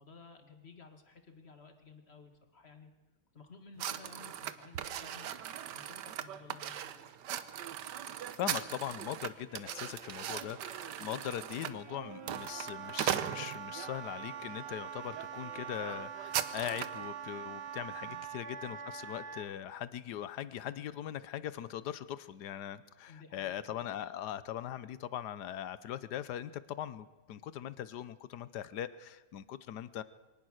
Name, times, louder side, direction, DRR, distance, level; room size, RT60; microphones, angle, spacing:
voice 1, 0.0-2.9 3.3-7.2 18.0-18.3 23.1-23.6, left 4 dB, 30° left, 6 dB, 1.9 m, -55 dB
sound 1, 3.8-13.9 14.5-14.8 15.1-15.3 15.5-17.0, right 10 dB, 65° right, 1.3 m, -39 dB
voice 2, 8.4-30.0, left 11 dB, 60° left, 15 dB, 1.2 m, -40 dB
Wind instrument woodwind instrument, 9.5-16.4, right 5 dB, 40° right, 0.6 m, -58 dB
Wind instrument woodwind instrument 2, 11.9-19.5, right 8 dB, 90° right, 2.1 m, -44 dB
23.5 x 19.0 x 6.5 m, 1.1 s
omnidirectional pair, 2.3 m